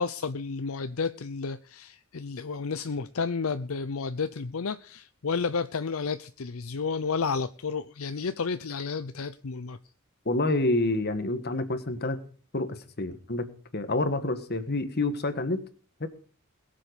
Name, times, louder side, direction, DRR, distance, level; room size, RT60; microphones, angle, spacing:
voice 1, 0.0-9.8, left 5 dB, 70° left, 11 dB, 0.6 m, -31 dB
voice 2, 10.2-12.2 12.5-13.5 13.7-15.6 16.0-16.1, left 2 dB, 45° left, 10 dB, 1.5 m, -28 dB
21.0 x 7.7 x 5.0 m, 0.41 s
head